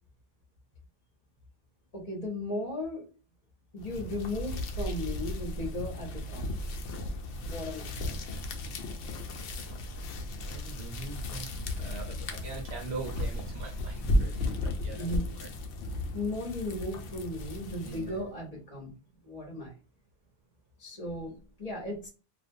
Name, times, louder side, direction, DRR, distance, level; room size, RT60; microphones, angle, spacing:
voice 1, 1.9-3.0 3.7-6.6 7.3-7.9 13.7-13.8 14.9-15.3 16.1-18.9 19.2-19.7 20.8-22.1, left 1 dB, 35° left, -2 dB, 0.8 m, -36 dB
sound 1, 3.8-18.2, left 1 dB, 85° left, 0.9 m, -35 dB
voice 2, 10.3-15.5 17.8-18.2, right 4 dB, 70° right, 1 dB, 0.9 m, -43 dB
2.5 x 2.2 x 2.5 m, 0.34 s
omnidirectional pair, 1.2 m